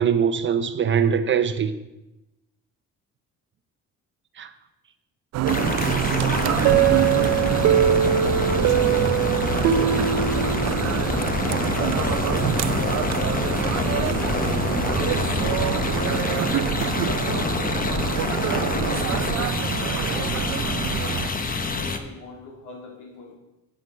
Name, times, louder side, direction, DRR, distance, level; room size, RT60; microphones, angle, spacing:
voice 1, 0.0-1.7 4.4-4.5 12.4-12.7, right 7 dB, 40° right, 0.8 m, -22 dB
sound 1, 5.3-21.3, right 12 dB, 65° right, 0.6 m, -27 dB
sound 2, 5.5-22.0, left 4 dB, 30° left, 1.0 m, -26 dB
sound 3, 6.6-11.3, right 10 dB, 85° right, 0.8 m, -22 dB
voice 2, 8.2-8.8 9.2-14.5 15.2-16.4 17.0-19.2 19.6-21.2 21.6-23.3, left 2 dB, 80° left, 3.2 m, -40 dB
11.0 x 8.1 x 5.6 m
cardioid pair, 115°, 29 cm